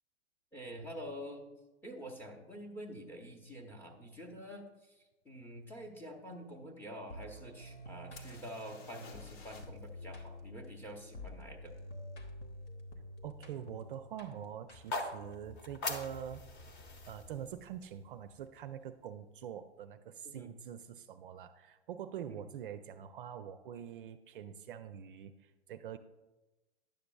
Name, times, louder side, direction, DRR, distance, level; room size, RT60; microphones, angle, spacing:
voice 1, 0.5-1.5 1.8-11.7 20.2-20.5 22.3-22.4, equal, 5° left, 1 dB, 0.7 m, -47 dB
sound 1, 7.1-15.2, left 1 dB, 75° left, 1.2 m, -49 dB
sound 2, 8.2-9.9 10.1-10.2 13.6-13.7 14.4-14.6 14.8-15.4 17.5-17.6 17.8-17.9, left 4 dB, 60° left, 1.1 m, -56 dB
voice 2, 13.2-16.4 17.1-26.0, right 9 dB, 50° right, 9 dB, 0.4 m, -45 dB
sound 3, 14.7-18.8, left 2 dB, 35° left, 1.0 m, -43 dB
10.5 x 6.7 x 2.3 m, 1.1 s
hypercardioid pair, 115°, 35 cm